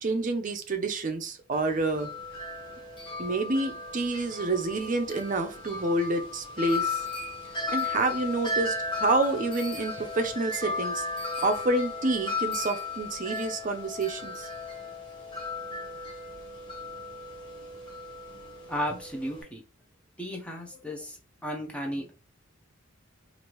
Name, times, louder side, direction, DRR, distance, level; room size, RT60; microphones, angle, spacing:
voice 1, 0.0-2.1 3.2-7.0 7.7-11.0 11.4-14.5, right 2 dB, 40° right, 0.5 m, -28 dB
Wind chime, 1.5-19.4, left 3 dB, 25° left, 1.0 m, -35 dB
voice 2, 18.7-19.6 20.2-22.1, equal, 5° left, 0.6 m, -34 dB
3.2 x 2.5 x 3.0 m
head